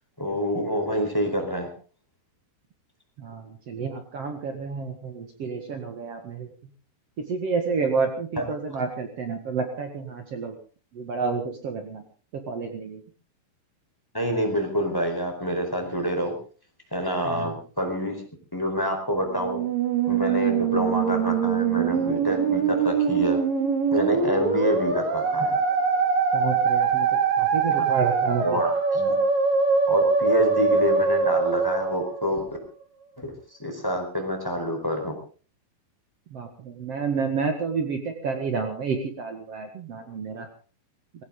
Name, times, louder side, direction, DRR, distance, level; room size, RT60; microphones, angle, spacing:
voice 1, 0.2-1.7 14.1-16.3 16.9-18.2 18.5-19.6 20.1-23.4 23.9-25.6 27.7-27.9 28.4-29.2 29.9-32.4 33.2-33.3 33.6-35.1, equal, 5° left, 3 dB, 3.6 m, -27 dB
voice 2, 3.2-6.5 7.2-10.5 10.9-12.0 12.3-13.0 17.2-17.5 26.3-28.6 36.3-40.5, right 5 dB, 85° right, 5 dB, 1.3 m, -30 dB
Musical instrument, 19.3-32.7, right 5 dB, 50° right, 3.6 m, -23 dB
20.0 x 17.5 x 3.9 m, 0.38 s
omnidirectional pair, 5.9 m